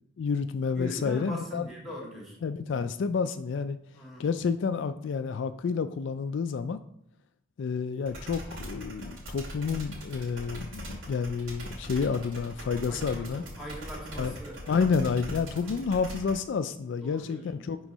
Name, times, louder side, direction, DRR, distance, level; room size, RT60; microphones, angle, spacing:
voice 1, 0.2-1.7 2.4-3.8 4.2-6.8 7.6-13.4 14.2-14.3 14.7-17.8, left 5 dB, 65° left, 10 dB, 0.3 m, -29 dB
voice 2, 0.7-2.4 2.7-2.8 3.9-4.3 12.9-15.0 15.5-15.8 17.0-17.6, equal, ahead, -3 dB, 2.0 m, -41 dB
sound 1, 8.1-16.3, right 1 dB, 85° right, 2.2 m, -41 dB
6.0 x 3.8 x 5.4 m, 0.71 s
head